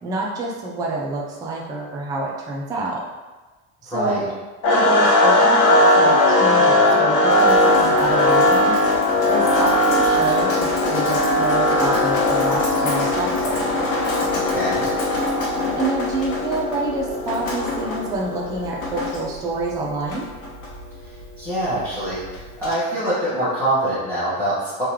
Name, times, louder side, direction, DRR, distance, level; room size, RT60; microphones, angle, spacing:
voice 1, 0.0-3.0 3.8-4.3 4.7-8.8 9.3-13.7 15.7-20.3, right 2 dB, 10° right, -3 dB, 0.3 m, -27 dB
voice 2, 3.9-4.2 14.3-14.9 21.4-22.2 22.6-24.8, right 1 dB, 5° left, -15 dB, 1.3 m, -24 dB
sound 1, 4.6-18.7, left 1 dB, 50° left, 0.8 m, -19 dB
Drip, 7.3-22.7, left 2 dB, 65° left, 1.2 m, -29 dB
3.7 x 3.1 x 3.0 m, 1.2 s
cardioid pair, 140°, 37 cm